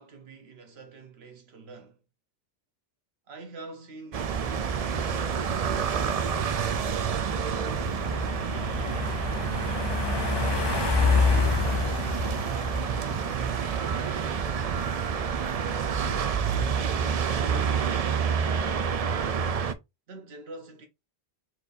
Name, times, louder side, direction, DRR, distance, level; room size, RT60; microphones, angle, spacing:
voice 1, 0.0-2.0 3.3-5.6 7.3-10.2 11.0-14.7 16.5-19.4 20.1-20.9, right 3 dB, 85° right, 1.2 m, -46 dB
sound 1, 4.1-19.7, right 7 dB, 50° right, 0.4 m, -28 dB
sound 2, 4.3-16.0, left 5 dB, 40° left, 0.4 m, -30 dB
4.4 x 2.7 x 3.9 m
omnidirectional pair, 1.0 m